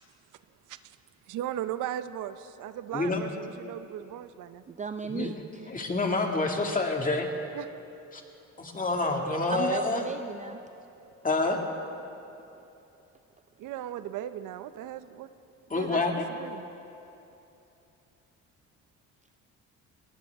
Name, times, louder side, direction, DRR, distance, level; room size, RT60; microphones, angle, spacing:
voice 1, 1.3-4.6 7.5-7.7 13.6-15.3 15.7-16.0 16.3-16.7, right 11 dB, 85° right, 12 dB, 0.6 m, -37 dB
voice 2, 4.7-5.7 9.5-10.6 12.5-12.6, right 6 dB, 25° right, 9 dB, 0.4 m, -36 dB
voice 3, 5.7-7.3 8.1-8.2 8.6-10.0 11.2-11.6 15.7-16.3, left 3 dB, 25° left, 2 dB, 2.1 m, -27 dB
21.0 x 18.0 x 3.5 m, 2.8 s
cardioid pair, 90°, 30 cm